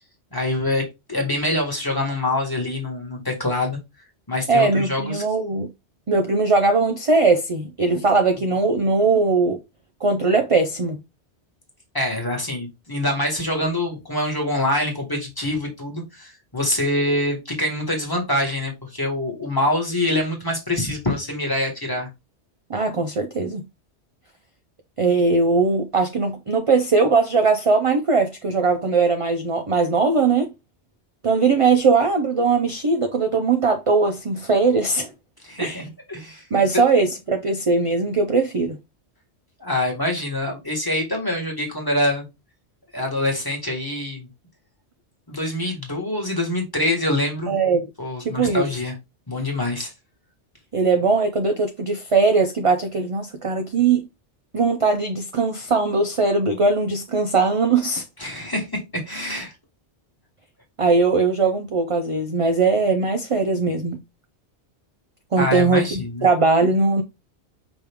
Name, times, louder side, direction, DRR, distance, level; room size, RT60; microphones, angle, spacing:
voice 1, 0.3-3.8 4.3-5.2 11.9-22.1 35.4-36.4 39.6-42.3 42.9-44.3 45.3-47.5 48.0-48.9 49.3-49.9 58.2-58.7 58.9-59.5 65.4-66.3, left 1 dB, 20° left, 1.4 m, -25 dB
voice 2, 4.5-5.7 6.1-9.6 10.0-11.0 22.7-23.6 25.0-30.5 31.2-35.1 35.6-35.8 36.5-38.8 47.5-47.9 48.2-48.7 50.7-54.1 54.5-58.0 60.8-64.0 65.3-67.0, right 4 dB, 40° right, 0.4 m, -20 dB
5.2 x 3.0 x 3.4 m
omnidirectional pair, 1.2 m